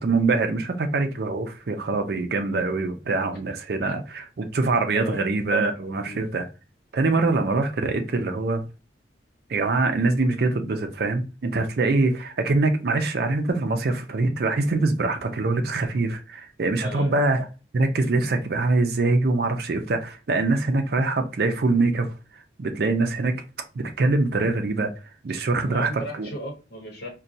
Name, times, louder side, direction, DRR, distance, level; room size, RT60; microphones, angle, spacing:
voice 1, 0.0-6.5 6.9-8.6 9.5-17.4 17.7-22.1 22.6-23.3 23.8-24.9 25.2-25.9 26.2-26.3, right 3 dB, 60° right, 0.5 m, -24 dB
voice 2, 4.9-5.3 6.0-6.3 16.8-17.2 25.6-27.1, equal, 60° left, 0.9 m, -36 dB
4.1 x 2.2 x 2.6 m
head